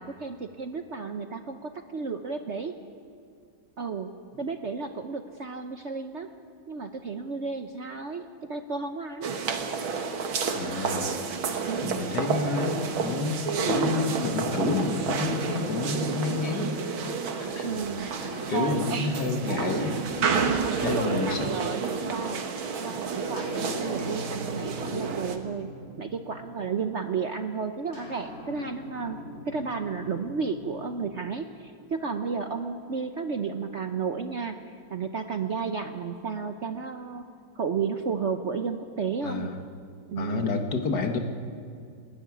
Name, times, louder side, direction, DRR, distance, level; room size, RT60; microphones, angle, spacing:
voice 1, 0.0-2.7 3.8-4.1 4.4-6.3 6.7-9.3 11.6-12.0 17.6-18.1 18.5-19.4 20.6-22.4 22.8-25.7 26.0-29.2 29.5-34.6 34.9-37.2 37.5-39.5 40.1-40.5, right 5 dB, 55° right, 7 dB, 0.8 m, -33 dB
sound 1, 9.2-25.4, right 5 dB, 90° right, 2.3 m, -30 dB
voice 2, 10.5-11.1 11.8-16.7 17.4-17.8 18.5-20.0 20.3-20.5 20.8-21.5 24.9-25.1 39.2-39.6 40.2-41.2, left 4 dB, 55° left, 4 dB, 2.1 m, -30 dB
sound 2, 18.2-22.0 23.4-26.9 27.9-32.1, equal, 35° left, 5.9 m, -43 dB
28.5 x 12.0 x 9.8 m, 2.3 s
omnidirectional pair, 2.1 m